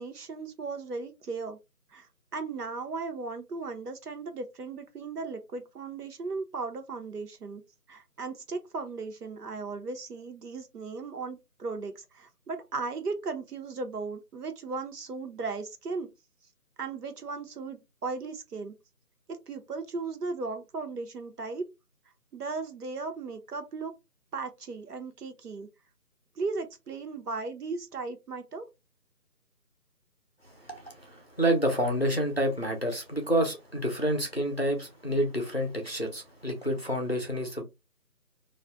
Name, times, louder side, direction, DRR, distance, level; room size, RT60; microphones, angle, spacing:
voice 1, 0.0-1.6 1.9-2.1 2.3-7.6 7.9-16.1 16.8-18.7 19.3-21.6 22.3-23.9 24.3-25.7 26.4-28.7, right 4 dB, 70° right, 0.8 m, -36 dB
voice 2, 30.7-37.6, right 1 dB, 40° left, 0.5 m, -28 dB
2.4 x 2.1 x 3.4 m
figure-of-eight pair, 175°, 48 cm